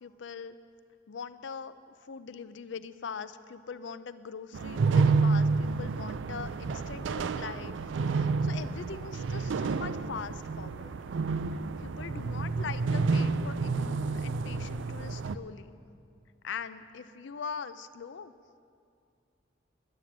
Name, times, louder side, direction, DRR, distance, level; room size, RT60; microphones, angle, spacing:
voice 1, 0.0-0.6 1.1-7.7 8.1-11.0 11.8-15.8 16.4-18.3, left 6 dB, 75° left, 13 dB, 0.5 m, -42 dB
sound 1, 4.5-15.4, right 4 dB, 80° right, 0.4 m, -29 dB
11.5 x 9.2 x 7.3 m, 2.4 s
head